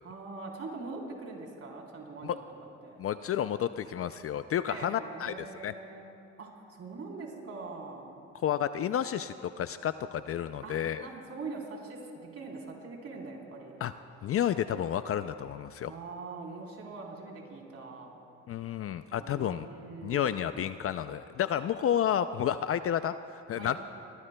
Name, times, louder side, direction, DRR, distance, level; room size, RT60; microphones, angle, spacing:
voice 1, 0.0-2.4 2.8-3.0 4.7-6.1 6.4-8.1 10.6-13.8 15.8-18.1 19.2-20.6 23.5-23.8, right 3 dB, 50° right, -1 dB, 3.7 m, -43 dB
voice 2, 3.0-5.7 8.4-11.1 13.8-13.9 14.2-15.9 18.5-19.7 20.0-23.8, left 10 dB, 50° left, 12 dB, 0.4 m, -31 dB
23.0 x 21.0 x 2.2 m, 2.8 s
cardioid pair, 90°, 30 cm